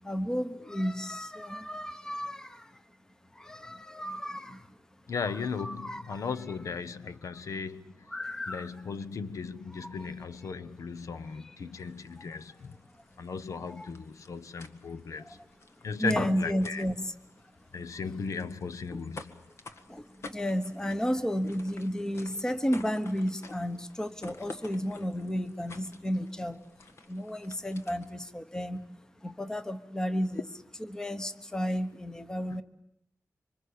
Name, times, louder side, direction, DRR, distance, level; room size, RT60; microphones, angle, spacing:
voice 1, 0.0-2.7 3.3-4.7 5.2-5.3 5.6-6.3 7.3-7.4 8.1-8.8 9.7-10.1 11.3-11.6 12.2-12.3 13.6-13.9 15.2-15.4 16.0-17.1 17.7-17.9 18.9-19.0 19.9-26.6 27.1-28.8 29.2-30.4 30.8-32.6, equal, 10° left, 1.1 m, -33 dB
voice 2, 5.1-7.8 8.5-12.8 13.2-15.4 15.8-16.8 17.7-19.3, left 5 dB, 70° left, 1.0 m, -36 dB
sound 1, 11.8-28.3, left 3 dB, 50° left, 1.8 m, -51 dB
26.0 x 25.0 x 8.6 m
wide cardioid pair, 160°, 6 cm